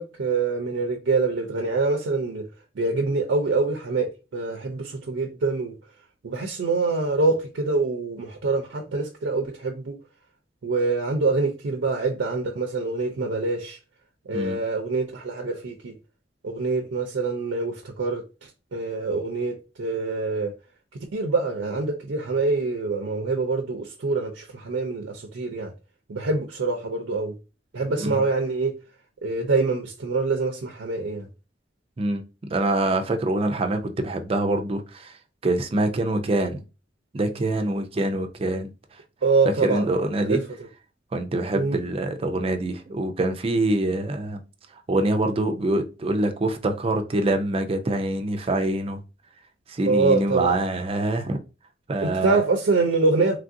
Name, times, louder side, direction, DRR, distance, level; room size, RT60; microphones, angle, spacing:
voice 1, 0.0-2.5 2.8-5.8 6.2-10.0 10.6-13.8 14.3-16.0 16.4-20.5 21.1-25.7 26.1-27.3 27.7-28.8 29.2-31.3 39.2-39.9 40.2-40.4 41.5-41.8 49.9-50.6 52.0-53.4, right 3 dB, 85° right, 0.5 m, -25 dB
voice 2, 32.5-35.2 35.4-36.6 37.1-38.7 39.4-40.4 41.1-44.4 44.9-49.0 49.7-51.4 51.9-52.4, right 2 dB, 30° right, 0.4 m, -25 dB
3.2 x 2.5 x 2.6 m
head